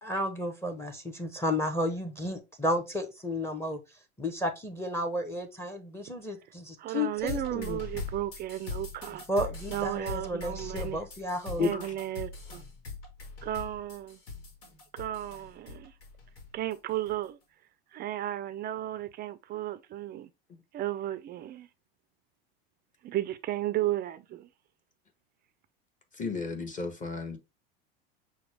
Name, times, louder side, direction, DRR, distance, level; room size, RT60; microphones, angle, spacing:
voice 1, 0.0-3.8 4.2-7.8 9.3-11.7, left 1 dB, 10° left, 0.8 m, -32 dB
voice 2, 6.8-9.3 9.7-11.0 11.6-12.6 13.4-14.2 14.9-15.9 16.5-17.4 17.9-20.3 20.7-21.7 23.0-24.5, right 13 dB, 35° right, 0.4 m, -34 dB
sound 1, 7.2-16.7 17.1-17.2, left 4 dB, 75° left, 1.4 m, -41 dB
voice 3, 11.5-11.9 26.1-27.4, left 5 dB, 25° left, 1.3 m, -32 dB
5.9 x 2.2 x 3.3 m
hypercardioid pair, 100°, 30 cm